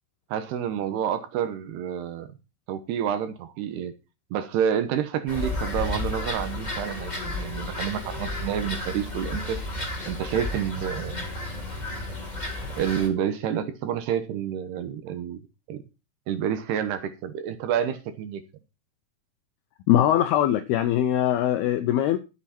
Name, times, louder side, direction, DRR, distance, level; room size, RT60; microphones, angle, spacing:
voice 1, 0.3-2.3 2.7-3.9 4.3-9.6 10.1-11.3 12.8-15.4 15.7-15.8 16.3-18.4, right 9 dB, 70° right, 2.8 m, -29 dB
sound 1, 5.3-13.1, left 2 dB, 15° left, 1.6 m, -32 dB
voice 2, 19.9-22.2, left 11 dB, 80° left, 2.3 m, -21 dB
12.5 x 8.3 x 4.4 m
omnidirectional pair, 5.4 m